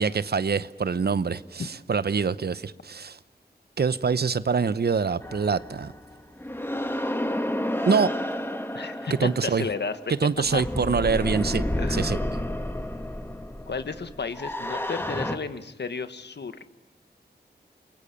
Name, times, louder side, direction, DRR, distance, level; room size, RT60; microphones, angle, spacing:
voice 1, 0.0-3.2 3.8-5.9 7.9-8.1 9.2-9.6 10.2-11.6 11.9-12.2, right 5 dB, 65° right, 0.8 m, -25 dB
sound 1, 5.2-15.4, left 1 dB, 10° left, 1.9 m, -31 dB
voice 2, 8.7-10.0 10.5-10.6 11.8-12.2 13.7-16.6, left 5 dB, 80° left, 1.5 m, -33 dB
28.5 x 22.0 x 6.9 m
wide cardioid pair, 75°, 18 cm